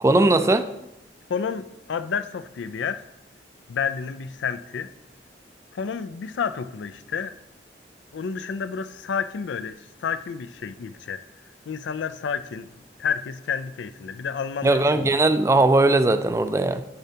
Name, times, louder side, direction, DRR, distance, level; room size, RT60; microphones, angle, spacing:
voice 1, 0.0-0.7 14.6-16.8, right 2 dB, 15° right, 0.3 m, -19 dB
voice 2, 1.3-3.1 3.7-4.9 5.7-7.4 8.1-11.2 11.7-12.7 13.0-15.2, left 6 dB, 90° left, 0.4 m, -30 dB
10.0 x 6.7 x 2.8 m
head